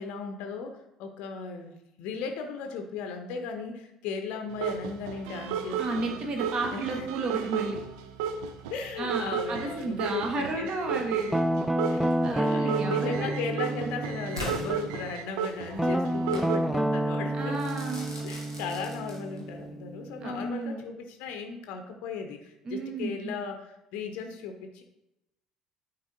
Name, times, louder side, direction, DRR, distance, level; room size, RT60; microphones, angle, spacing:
voice 1, 0.0-6.1 6.7-7.1 8.7-11.2 11.5-17.6 18.2-24.8, left 5 dB, 60° left, 5 dB, 0.6 m, -37 dB
sound 1, 4.5-16.6, right 7 dB, 65° right, 0.5 m, -34 dB
voice 2, 5.8-7.8 9.0-11.3 12.2-14.0 17.3-18.1 20.2-20.8 22.6-23.3, right 3 dB, 40° right, 2 dB, 1.1 m, -33 dB
Guitar, 11.3-15.1 15.8-20.5, right 1 dB, 5° right, 0.3 m, -30 dB
Crackle / Fireworks, 14.3-15.5 16.3-16.6 17.5-19.5, left 1 dB, 90° right, 1.2 m, -39 dB
9.4 x 4.2 x 2.6 m, 0.87 s
figure-of-eight pair, 55°, 2 cm